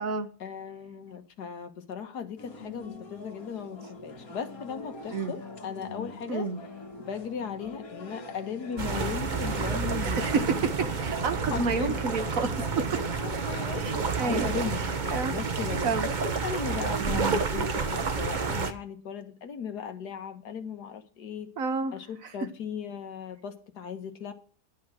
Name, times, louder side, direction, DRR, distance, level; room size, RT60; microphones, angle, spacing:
voice 1, 0.4-6.5 7.0-10.5 11.5-12.0 13.2-16.0 16.4-21.5 21.9-24.3, left 7 dB, 90° left, 1.9 m, -37 dB
sound 1, 2.4-14.2, left 3 dB, 65° left, 2.1 m, -43 dB
voice 2, 6.3-6.6 10.0-12.8 13.8-13.9 14.2-14.5 15.1-15.3 15.8-16.1 17.0-17.4 21.6-21.9, right 4 dB, 60° right, 1.4 m, -29 dB
sound 2, 8.8-18.7, right 4 dB, 35° right, 0.9 m, -30 dB
11.0 x 5.4 x 7.5 m
omnidirectional pair, 1.7 m